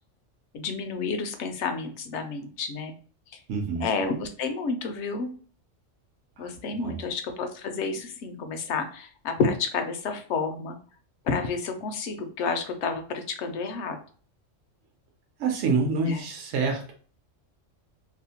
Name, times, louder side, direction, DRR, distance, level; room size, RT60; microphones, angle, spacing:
voice 1, 0.5-2.9 3.8-5.3 6.4-10.8 11.2-14.0 16.0-16.2, left 4 dB, 70° left, 6 dB, 0.8 m, -30 dB
voice 2, 3.5-3.8 6.4-7.0 15.4-16.9, right 4 dB, 70° right, 1 dB, 0.9 m, -27 dB
2.7 x 2.1 x 2.7 m, 0.42 s
omnidirectional pair, 1.3 m